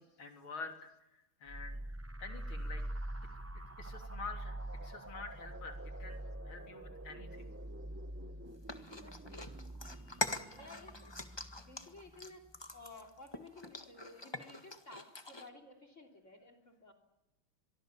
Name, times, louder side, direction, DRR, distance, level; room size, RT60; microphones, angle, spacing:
voice 1, 0.0-1.8 2.2-2.8 3.5-4.5 4.8-7.5 10.5-10.6, left 4 dB, 75° left, 5 dB, 4.0 m, -48 dB
sound 1, 1.5-12.8, right 1 dB, 20° right, 0.4 m, -45 dB
sound 2, 8.7-15.5, left 2 dB, 15° left, 1.3 m, -43 dB
voice 2, 10.5-11.1 11.5-12.4 12.7-16.9, left 2 dB, 35° left, 8 dB, 3.6 m, -54 dB
25.0 x 23.5 x 7.2 m, 0.96 s
omnidirectional pair, 2.3 m